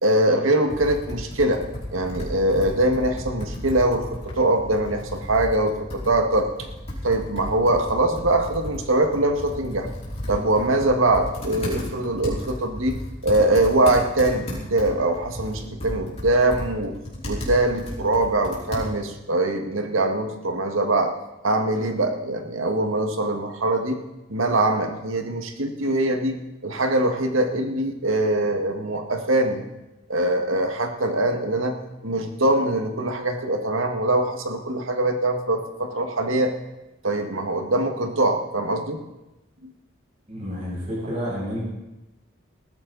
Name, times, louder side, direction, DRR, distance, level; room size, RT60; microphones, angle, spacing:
voice 1, 0.0-1.6 1.9-6.5 7.0-9.9 10.3-16.9 17.3-21.2 21.4-24.0 24.3-29.6 30.1-31.8 32.0-36.5 37.0-39.0 39.6-39.7, right 1 dB, 85° right, 5 dB, 1.9 m, -23 dB
Computer keyboard, 0.7-19.2, left 1 dB, 30° left, 4.5 m, -34 dB
voice 2, 40.3-41.6, equal, 35° right, -7 dB, 7.6 m, -30 dB
20.0 x 14.0 x 4.1 m, 0.99 s
head